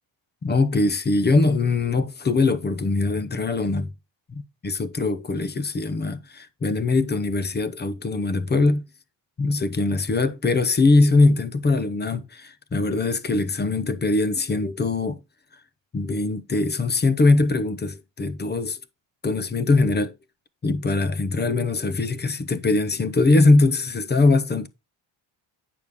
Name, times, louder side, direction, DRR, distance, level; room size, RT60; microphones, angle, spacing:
voice 1, 0.4-3.9 4.3-8.8 9.4-15.2 15.9-18.8 19.2-20.2 20.6-24.7, left 3 dB, 20° left, 0.7 m, -22 dB
8.7 x 6.7 x 3.6 m
cardioid pair, 130°, 46 cm